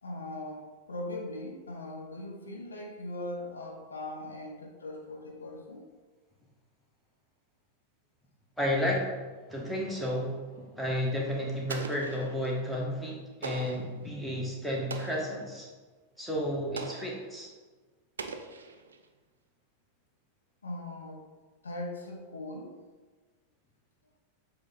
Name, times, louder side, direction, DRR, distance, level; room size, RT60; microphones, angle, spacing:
voice 1, 0.0-5.9 9.4-9.7 10.5-11.1 20.6-21.2 21.6-22.8, left 1 dB, 75° left, 0 dB, 0.9 m, -40 dB
voice 2, 8.6-9.1 9.5-10.4 10.8-15.7 16.2-17.5, equal, ahead, -3 dB, 1.4 m, -32 dB
Explosion, 11.7-12.6 13.4-14.0 14.9-15.4 16.8-17.3 18.2-19.1, right 4 dB, 70° right, 0.5 m, -41 dB
7.0 x 3.4 x 4.1 m, 1.4 s
figure-of-eight pair, 90°, 0 cm